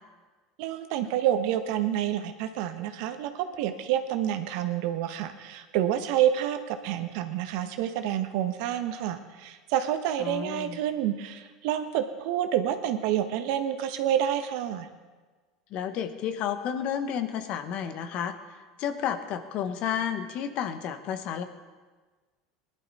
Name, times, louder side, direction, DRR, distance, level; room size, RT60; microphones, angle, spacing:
voice 1, 0.6-14.9, right 11 dB, 65° right, 8 dB, 1.2 m, -28 dB
voice 2, 10.2-10.8 15.7-18.3 18.8-21.4, left 8 dB, 55° left, 9 dB, 1.3 m, -31 dB
19.0 x 11.5 x 4.2 m, 1.3 s
hypercardioid pair, 85°, 2 cm